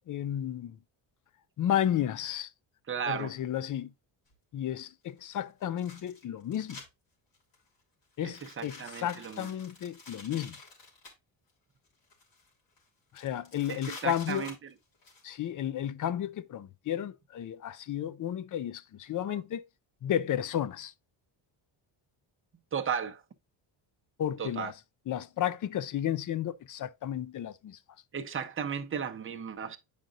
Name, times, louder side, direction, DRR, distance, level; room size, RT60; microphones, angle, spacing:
voice 1, 0.1-0.8 1.6-2.5 3.1-3.9 4.5-6.8 8.2-10.6 13.1-14.5 15.2-19.6 20.0-20.9 24.2-24.7 25.1-27.8, left 10 dB, 40° left, 0.5 m, -33 dB
voice 2, 2.9-3.3 8.2-9.5 13.7-14.5 19.3-19.4 22.7-23.2 24.4-24.7 28.1-29.8, right 7 dB, 25° right, 0.7 m, -35 dB
sound 1, 4.3-4.4 5.6-6.9 7.3-7.7 8.2-11.1 11.9-12.5 12.8-12.9 13.2-15.2, left 3 dB, 60° left, 3.5 m, -49 dB
9.1 x 5.1 x 2.5 m
cardioid pair, 120°, 49 cm